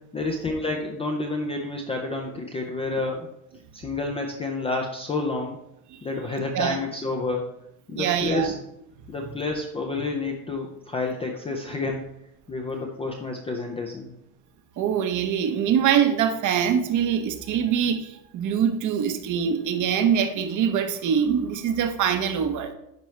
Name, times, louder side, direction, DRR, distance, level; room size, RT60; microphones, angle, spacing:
voice 1, 0.1-3.3 3.7-5.6 6.0-7.5 7.9-8.6 9.1-12.1 12.5-14.1, left 3 dB, 15° left, 1 dB, 0.4 m, -29 dB
voice 2, 8.0-8.5 14.8-22.7, right 8 dB, 40° right, 8 dB, 0.8 m, -24 dB
10.5 x 4.4 x 3.2 m, 0.81 s
supercardioid pair, 135°, 49 cm